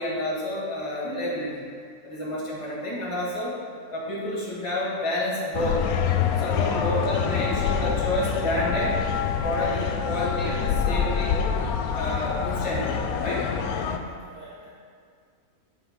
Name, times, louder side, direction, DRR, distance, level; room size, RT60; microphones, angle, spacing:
voice 1, 0.0-1.6 2.0-3.5 3.9-5.8 6.4-8.9 9.2-11.4 11.9-13.4, left 1 dB, 20° left, -7 dB, 1.6 m, -29 dB
sound 1, 5.5-14.0, left 7 dB, 75° left, 1.0 m, -26 dB
voice 2, 13.9-14.7, left 1 dB, 35° left, -9 dB, 1.7 m, -44 dB
7.7 x 5.1 x 5.2 m, 2.1 s
omnidirectional pair, 1.6 m